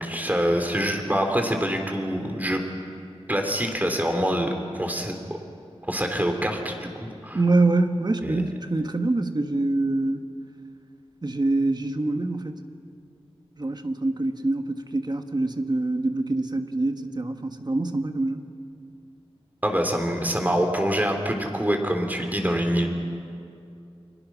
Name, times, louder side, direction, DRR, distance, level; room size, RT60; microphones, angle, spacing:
voice 1, 0.0-2.6 3.3-4.5 4.8-5.1 5.9-7.4 8.2-8.4 19.6-22.9, equal, 15° right, 4 dB, 3.3 m, -25 dB
voice 2, 7.3-10.2 11.2-12.6 13.6-18.4, right 2 dB, 40° right, 7 dB, 1.5 m, -25 dB
30.0 x 23.5 x 6.3 m, 2.5 s
wide cardioid pair, 65°, 11 cm